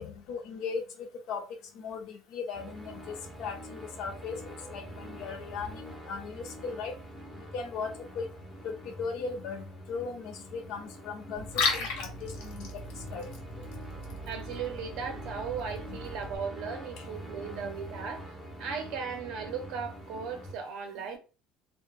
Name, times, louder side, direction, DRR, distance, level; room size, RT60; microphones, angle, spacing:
voice 1, 0.0-1.4 1.7-6.9 7.5-8.3 8.6-11.5 11.7-12.7 13.1-13.3 15.9-16.0 17.0-17.1 17.5-17.9, left 5 dB, 50° left, 0.5 m, -38 dB
sound 1, 2.5-20.5, equal, ahead, 0.4 m, -45 dB
Liquid, 11.4-16.4, left 4 dB, 65° left, 0.9 m, -36 dB
voice 2, 14.3-21.2, right 6 dB, 55° right, 0.6 m, -37 dB
2.1 x 2.1 x 3.1 m
cardioid pair, 180°, 0 cm